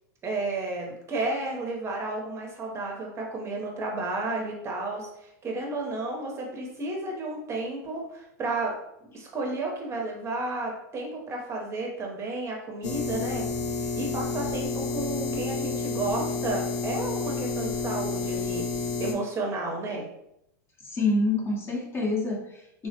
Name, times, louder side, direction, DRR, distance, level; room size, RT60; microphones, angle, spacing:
voice 1, 0.2-8.8 9.0-13.4 14.0-20.1, right 2 dB, 25° right, 0 dB, 0.6 m, -32 dB
sound 1, 12.8-19.1, left 4 dB, 75° left, 0.5 m, -30 dB
voice 2, 20.8-22.9, left 2 dB, 25° left, -1 dB, 0.7 m, -27 dB
3.3 x 2.0 x 2.7 m, 0.79 s
hypercardioid pair, 110°, 11 cm